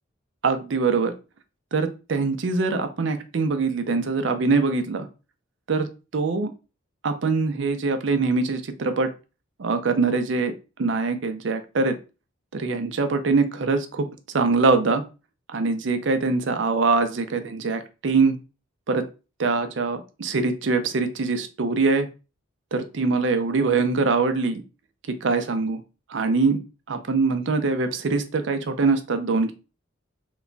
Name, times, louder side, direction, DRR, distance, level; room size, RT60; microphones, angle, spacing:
voice 1, 0.4-1.1 1.7-5.1 5.7-5.9 6.1-6.5 7.0-9.1 9.6-10.5 10.8-12.0 12.5-14.1 14.3-15.0 15.5-18.3 18.9-19.0 19.4-22.1 22.7-24.6 25.2-25.8 26.1-26.6 26.9-29.5, right 4 dB, 65° right, 8 dB, 0.5 m, -23 dB
3.0 x 2.2 x 3.7 m, 0.31 s
head